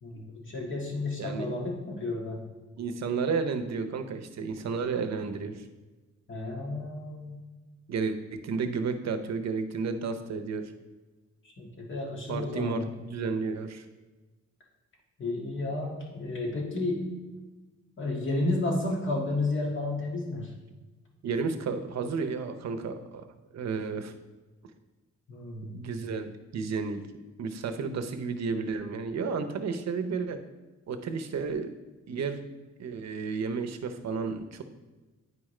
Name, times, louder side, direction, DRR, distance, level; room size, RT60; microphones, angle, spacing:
voice 1, 0.0-2.4 6.3-7.4 11.4-12.9 15.2-17.1 18.0-20.5 25.3-25.7, left 2 dB, 40° left, -1 dB, 1.7 m, -32 dB
voice 2, 1.2-1.5 2.8-5.6 7.9-10.7 12.3-13.8 21.2-23.2 23.5-24.1 25.7-27.1 27.4-30.4 30.9-31.7 32.1-32.4 32.8-34.6, right 5 dB, 65° right, 7 dB, 0.7 m, -32 dB
9.4 x 4.9 x 3.2 m, 1.2 s
cardioid pair, 115°, 29 cm